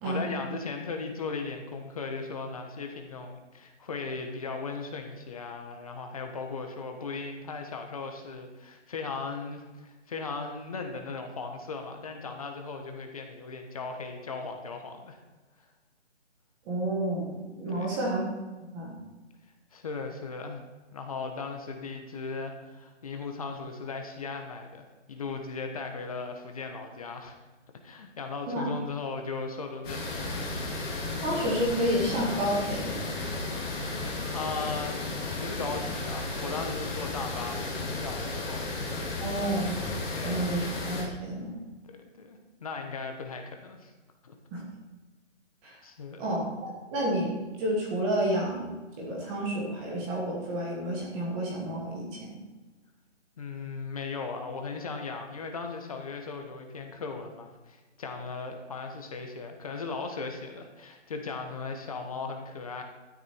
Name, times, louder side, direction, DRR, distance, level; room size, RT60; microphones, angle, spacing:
voice 1, 0.0-15.2 17.7-18.0 19.7-20.6 20.9-27.4 27.8-30.9 34.3-38.7 40.1-40.5 41.9-43.9 44.2-44.3 45.8-46.3 53.4-62.8, left 4 dB, 30° left, 4 dB, 1.3 m, -37 dB
voice 2, 16.7-17.3 17.6-18.2 18.7-19.0 28.5-28.6 31.2-33.0 39.2-39.7 40.2-41.5 44.5-44.6 45.6-45.7 46.2-47.3 47.6-48.7 49.0-52.3, right 1 dB, 10° right, -2 dB, 1.3 m, -30 dB
sound 1, 29.8-41.0, left 2 dB, 10° left, 2.3 m, -34 dB
12.5 x 10.0 x 4.5 m, 1.2 s
hypercardioid pair, 165°, 36 cm